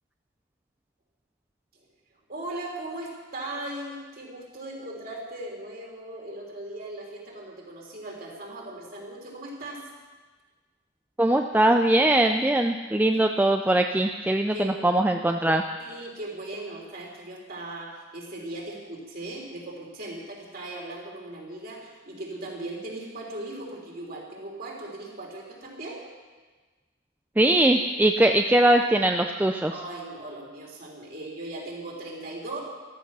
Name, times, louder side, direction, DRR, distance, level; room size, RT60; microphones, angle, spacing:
voice 1, 2.3-9.9 14.5-14.8 15.8-26.0 29.7-32.6, right 2 dB, 45° right, -1 dB, 3.5 m, -38 dB
voice 2, 11.2-15.6 27.4-29.7, right 1 dB, 10° right, 4 dB, 0.4 m, -21 dB
14.0 x 13.5 x 6.2 m, 1.3 s
head